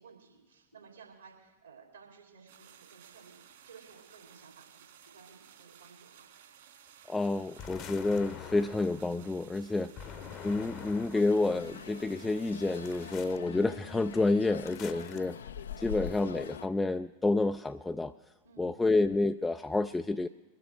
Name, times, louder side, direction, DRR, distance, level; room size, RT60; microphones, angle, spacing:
voice 1, 0.0-6.3 9.7-10.0 14.9-15.3 18.4-18.8, right 5 dB, 75° right, -1 dB, 4.1 m, -56 dB
sound 1, 2.5-13.3, right 9 dB, 55° right, 2.7 m, -57 dB
voice 2, 7.1-9.9 10.4-15.4 15.8-18.1 18.6-20.3, left 2 dB, 10° left, 8 dB, 0.4 m, -29 dB
sound 2, 7.6-9.1 10.0-11.4 12.8-13.4 14.6-15.2, left 8 dB, 35° left, 0.9 m, -45 dB
sound 3, 11.1-16.7, left 8 dB, 65° left, 0.5 m, -44 dB
22.0 x 8.0 x 6.5 m, 1.2 s
figure-of-eight pair, 90°, 0 cm